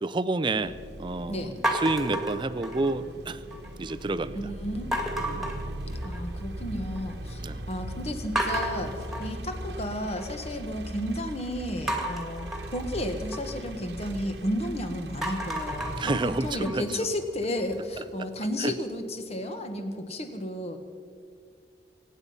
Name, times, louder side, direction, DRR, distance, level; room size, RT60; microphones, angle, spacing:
voice 1, 0.0-3.4 3.8-4.4 5.9-6.0 7.4-7.6 16.0-16.8 18.6-18.7, right 2 dB, 25° right, 14 dB, 0.5 m, -29 dB
sound 1, 0.6-16.7, right 1 dB, 75° right, 1.2 m, -39 dB
voice 2, 1.3-1.7 4.3-4.9 5.2-5.4 6.0-20.8, left 1 dB, 35° left, 7 dB, 1.4 m, -33 dB
sound 2, 1.6-3.1 3.5-4.0 4.9-6.4 6.8-7.3 7.7-7.8 8.4-10.5 11.9-14.7 15.1-18.0, right 1 dB, ahead, 2.2 m, -33 dB
23.5 x 9.6 x 5.6 m, 2.1 s
head